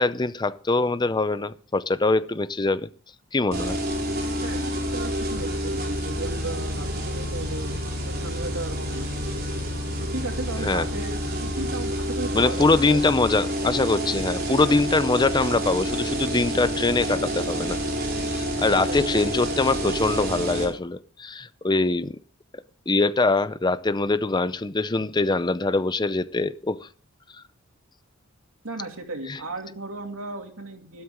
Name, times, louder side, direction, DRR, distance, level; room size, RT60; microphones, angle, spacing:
voice 1, 0.0-2.9 3.3-3.8 10.6-10.9 12.3-17.8 18.3-22.2 22.9-26.9 29.3-29.4, left 3 dB, 20° left, 0.6 m, -23 dB
sound 1, 3.5-20.6, equal, 50° right, 4.9 m, -28 dB
voice 2, 4.4-7.8 8.0-9.1 10.1-13.2 18.8-19.4 28.6-31.0, right 2 dB, 85° right, 2.7 m, -35 dB
13.0 x 13.0 x 3.7 m
head